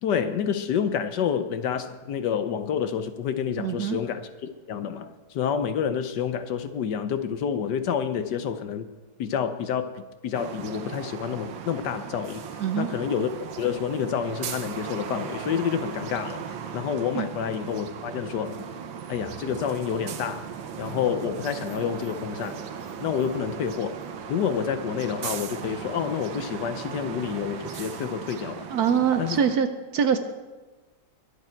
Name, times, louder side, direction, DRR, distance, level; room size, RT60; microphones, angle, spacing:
voice 1, 0.0-8.9 9.2-12.4 12.8-13.3 13.6-16.4 16.7-18.7 19.1-20.4 20.8-22.6 23.0-24.0 24.3-28.7 29.2-29.4, left 7 dB, 70° left, 10 dB, 1.3 m, -28 dB
voice 2, 3.6-4.0 12.6-12.9 17.2-17.3 28.7-29.7 29.9-30.2, right 7 dB, 65° right, 8 dB, 1.1 m, -23 dB
sound 1, 10.3-29.6, right 7 dB, 80° right, 1.7 m, -37 dB
21.5 x 8.2 x 4.5 m, 1.2 s
omnidirectional pair, 2.1 m